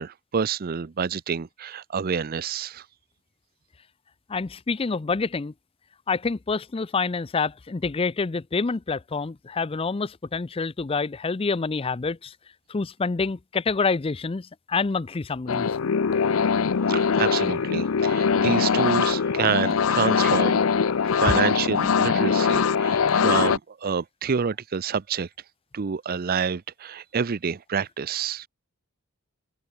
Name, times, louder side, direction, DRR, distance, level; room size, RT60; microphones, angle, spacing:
voice 1, 0.0-2.8 16.9-20.6 21.2-25.3 25.7-28.5, right 6 dB, 45° right, 0.5 m, -28 dB
voice 2, 4.3-5.5 6.1-12.3 12.7-15.7, left 4 dB, 25° left, 0.4 m, -27 dB
sound 1, 15.5-23.6, left 6 dB, 75° left, 0.6 m, -22 dB
head